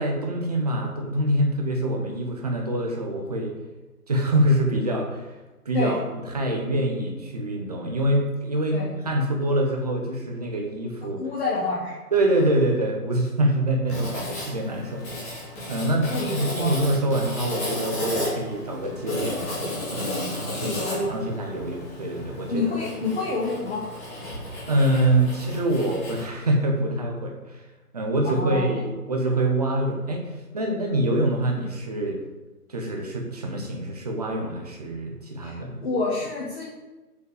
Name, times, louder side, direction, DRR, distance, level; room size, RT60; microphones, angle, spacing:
voice 1, 0.0-3.5 4.1-5.3 5.6-6.0 6.3-11.2 12.1-15.3 15.7-19.4 19.9-22.8 24.7-27.6 27.9-32.2 32.7-35.8, right 1 dB, 25° right, 1 dB, 1.0 m, -25 dB
voice 2, 11.2-12.0 16.1-16.8 20.5-21.2 22.5-23.8 28.3-28.8 35.4-36.6, left 3 dB, 40° left, -8 dB, 1.9 m, -28 dB
Writing, 13.9-26.3, left 1 dB, 10° left, 1.2 m, -34 dB
7.0 x 4.8 x 6.5 m, 1.1 s
figure-of-eight pair, 145°, 47 cm